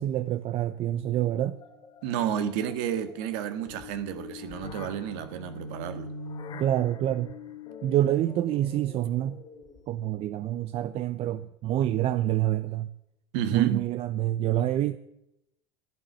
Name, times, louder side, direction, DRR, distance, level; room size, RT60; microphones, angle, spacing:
voice 1, 0.0-1.6 6.6-7.3 7.8-9.4 9.9-12.9 13.5-15.0, right 12 dB, 45° right, 0.8 m, -27 dB
sound 1, 1.0-10.1, left 3 dB, 35° left, 3.1 m, -44 dB
voice 2, 2.0-6.1 13.3-13.8, right 9 dB, 60° right, 1.7 m, -30 dB
12.0 x 11.0 x 9.4 m
hypercardioid pair, 85°, 14 cm